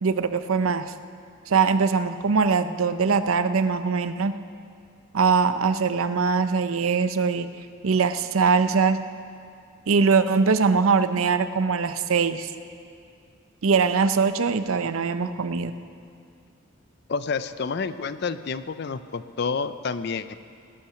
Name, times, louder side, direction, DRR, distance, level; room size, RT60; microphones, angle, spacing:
voice 1, 0.0-0.9 1.5-4.4 5.1-7.5 7.8-9.0 9.9-12.5 13.6-15.7, right 5 dB, 85° right, 11 dB, 0.6 m, -22 dB
voice 2, 17.1-20.4, left 5 dB, 55° left, 13 dB, 0.5 m, -29 dB
19.0 x 8.7 x 5.7 m, 2.4 s
head